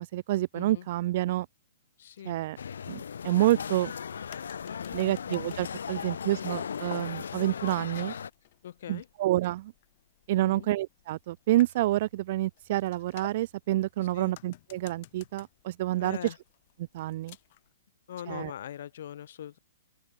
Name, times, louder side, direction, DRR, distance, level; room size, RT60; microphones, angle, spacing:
voice 1, 0.0-1.5 2.3-2.6 2.9-3.9 4.9-8.1 8.9-9.7 10.3-16.2 16.9-17.4 18.3-18.5, right 15 dB, 50° right, 0.9 m, -28 dB
voice 2, 0.5-0.9 2.0-2.4 4.6-5.0 8.6-9.1 10.3-10.7 14.1-14.4 16.0-16.4 18.1-19.6, left 10 dB, 65° left, 3.2 m, -42 dB
sound 1, 2.6-8.3, left 7 dB, 85° left, 1.2 m, -37 dB
sound 2, 5.9-17.7, left 17 dB, 45° left, 6.5 m, -57 dB
open air
hypercardioid pair, 150°, 0 cm